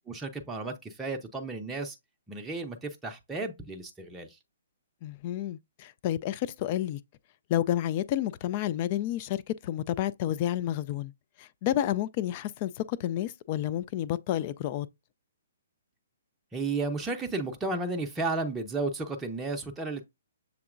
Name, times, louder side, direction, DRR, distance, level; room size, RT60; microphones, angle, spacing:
voice 1, 0.1-2.0 2.3-4.4 16.5-20.0, right 3 dB, 10° right, 0.6 m, -33 dB
voice 2, 5.0-7.0 7.5-11.1 11.4-14.9, left 12 dB, 40° left, 0.3 m, -30 dB
6.9 x 2.8 x 2.5 m
figure-of-eight pair, 130°, 0 cm